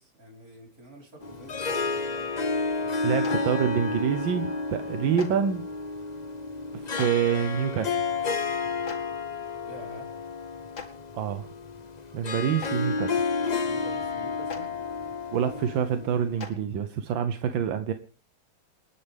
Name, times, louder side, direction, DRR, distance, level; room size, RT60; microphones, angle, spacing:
voice 1, 0.0-2.3 2.8-3.2 9.6-10.1 12.4-12.5 13.6-14.7, right 1 dB, 50° right, -1 dB, 5.6 m, -47 dB
Harp, 1.2-16.5, left 4 dB, 55° left, 0.4 m, -31 dB
voice 2, 3.0-5.6 6.7-8.0 11.1-11.5 12.1-13.2 15.3-17.9, right 8 dB, 85° right, 9 dB, 1.7 m, -27 dB
Clapping, 3.2-3.4 5.2-5.3 7.0-7.1 8.9-9.0 10.7-10.9 12.6-12.7 14.5-14.6 16.4-16.5, left 5 dB, 75° left, 2.9 m, -37 dB
28.5 x 9.9 x 3.5 m, 0.35 s
omnidirectional pair, 2.0 m